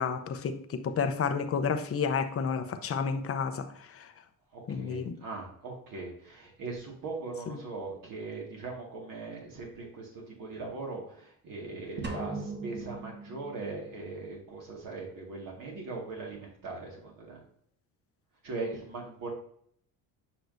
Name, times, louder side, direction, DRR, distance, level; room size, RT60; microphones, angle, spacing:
voice 1, 0.0-4.1 4.7-5.1 7.5-7.6, left 6 dB, 35° left, 0.8 m, -31 dB
voice 2, 4.5-17.4 18.4-19.3, right 3 dB, 55° right, 2.0 m, -40 dB
sound 1, 12.0-14.1, right 3 dB, 25° right, 1.3 m, -39 dB
8.2 x 5.8 x 2.7 m
cardioid pair, 110°, 39 cm